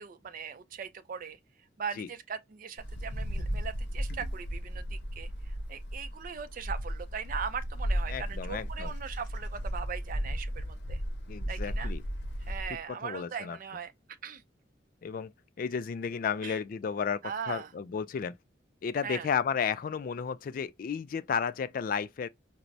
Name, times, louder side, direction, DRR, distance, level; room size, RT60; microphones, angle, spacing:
voice 1, 0.0-1.4 1.8-5.3 5.7-11.0 11.5-11.9 12.5-13.9 14.2-14.4 16.4-16.6 17.2-17.7 19.0-19.3, right 6 dB, 50° right, 0.4 m, -39 dB
Wind, 2.8-12.8, equal, 65° left, 0.8 m, -35 dB
voice 2, 8.1-8.9 11.3-12.0 12.9-13.6 15.0-15.3 15.6-17.2 17.5-18.3 18.8-22.3, left 6 dB, 50° left, 0.3 m, -33 dB
4.5 x 2.0 x 2.5 m
head